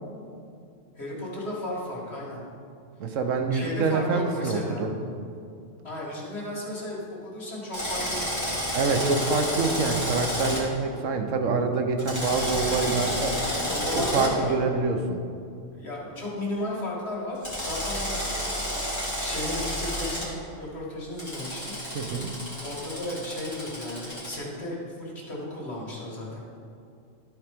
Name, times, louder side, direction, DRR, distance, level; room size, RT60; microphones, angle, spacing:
voice 1, 1.0-2.4 3.5-4.9 5.8-8.5 13.6-14.6 15.7-18.8 19.2-21.7 22.6-26.4, left 1 dB, 55° left, -5 dB, 2.3 m, -34 dB
voice 2, 3.0-5.0 8.7-13.4 13.9-15.2 21.9-22.3, right 4 dB, 85° right, 5 dB, 1.2 m, -26 dB
Drill, 7.7-10.6 12.0-14.3 17.4-20.2 21.2-24.3, equal, 15° left, 2.5 m, -30 dB
12.5 x 4.5 x 5.2 m, 2.5 s
omnidirectional pair, 1.3 m